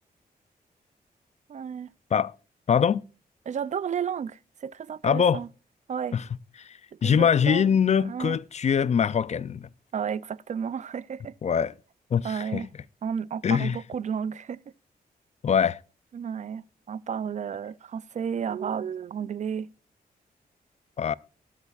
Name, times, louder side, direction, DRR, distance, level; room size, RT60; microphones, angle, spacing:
voice 1, 1.5-1.9 3.5-5.5 5.9-6.2 7.0-7.7 8.0-8.4 9.9-11.3 12.2-12.7 13.0-14.6 16.1-19.7, right 7 dB, 50° right, 0.4 m, -32 dB
voice 2, 2.7-3.0 5.0-5.4 6.1-6.2 6.6-9.7 11.4-11.7 12.1-12.7 13.4-13.8 15.4-15.8 21.0-21.1, left 7 dB, 45° left, 0.4 m, -23 dB
20.0 x 8.3 x 2.4 m
cardioid pair, 85°, 16 cm